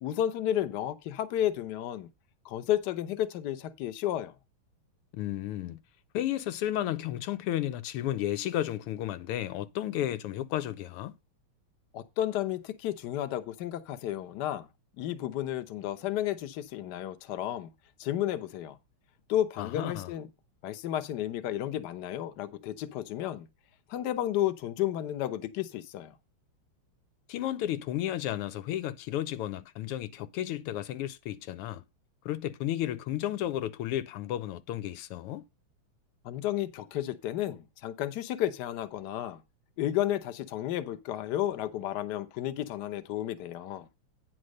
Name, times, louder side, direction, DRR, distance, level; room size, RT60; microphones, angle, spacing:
voice 1, 0.0-2.1 2.4-4.3 11.9-14.7 15.0-17.7 18.0-18.8 19.3-20.3 20.6-23.5 23.9-26.1 36.2-39.4 39.8-43.9, left 12 dB, 60° left, 1.2 m, -32 dB
voice 2, 5.1-5.8 6.1-11.1 19.6-20.1 27.3-31.8 32.2-35.4, left 12 dB, 90° left, 1.6 m, -33 dB
9.4 x 4.2 x 6.3 m
omnidirectional pair, 2.4 m